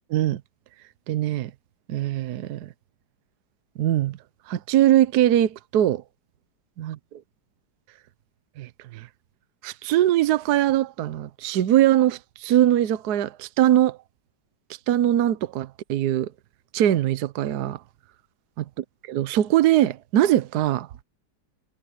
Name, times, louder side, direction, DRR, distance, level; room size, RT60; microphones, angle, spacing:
voice 1, 0.1-0.4 1.1-1.5 1.9-2.7 3.8-4.2 4.5-6.0 6.8-7.0 8.6-9.1 9.6-14.0 14.9-16.3 16.7-17.8 19.1-20.9, right 12 dB, 65° right, 1.3 m, -21 dB
omnidirectional pair, 1.9 m